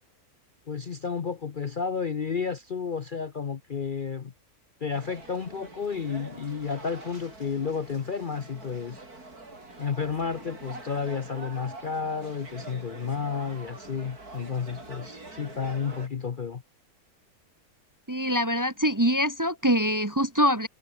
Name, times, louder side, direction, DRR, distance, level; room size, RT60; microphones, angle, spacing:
voice 1, 0.7-4.3 4.8-9.0 9.8-16.6, left 6 dB, 40° left, 0.8 m, -31 dB
sound 1, 4.9-16.1, right 2 dB, 80° right, 6.0 m, -45 dB
voice 2, 18.1-20.7, equal, 15° right, 0.9 m, -24 dB
omnidirectional pair, 1.6 m